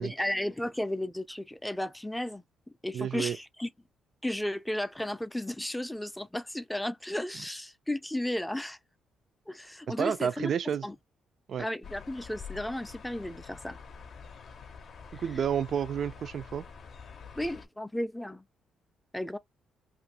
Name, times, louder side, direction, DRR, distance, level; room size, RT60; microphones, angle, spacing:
voice 1, 0.0-2.4 2.8-3.7 4.2-8.8 9.5-10.5 10.8-11.0 11.6-13.8 15.1-15.2 17.4-18.5 19.1-19.4, left 1 dB, 5° left, 0.4 m, -34 dB
voice 2, 2.9-3.4 10.0-10.8 11.5-11.7 15.1-16.6, right 8 dB, 60° right, 0.4 m, -30 dB
sound 1, 11.8-17.7, left 6 dB, 55° left, 0.6 m, -46 dB
2.5 x 2.4 x 2.8 m
cardioid pair, 90°, 0 cm